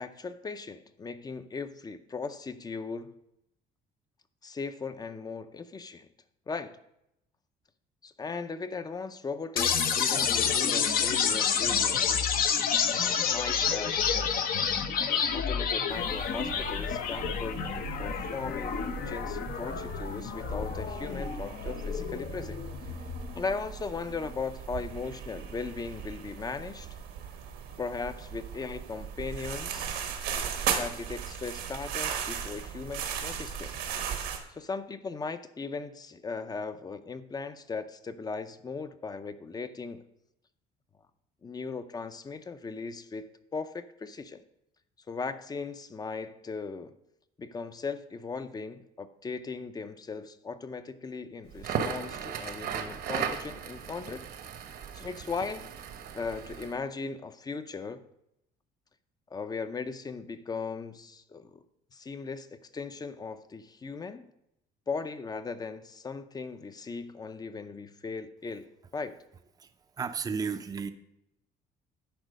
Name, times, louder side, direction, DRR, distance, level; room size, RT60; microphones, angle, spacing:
voice 1, 0.0-3.1 4.4-6.1 6.5-6.8 8.0-12.3 12.9-14.3 15.3-22.6 23.3-27.0 27.8-29.9 30.7-33.8 34.5-40.0 41.4-44.4 45.1-46.9 47.4-54.3 54.9-55.7 56.1-58.0 59.3-61.6 61.9-64.3 64.9-69.2, left 4 dB, 25° left, 12 dB, 0.6 m, -38 dB
sound 1, 9.6-23.5, left 7 dB, 60° left, 0.8 m, -29 dB
sound 2, 15.9-34.4, right 8 dB, 90° right, 1.3 m, -38 dB
Crackle, 51.5-56.8, right 7 dB, 65° right, 1.0 m, -36 dB
voice 2, 70.0-70.9, right 5 dB, 20° right, 8 dB, 0.5 m, -32 dB
10.5 x 4.4 x 5.1 m, 0.81 s
cardioid pair, 110°, 17 cm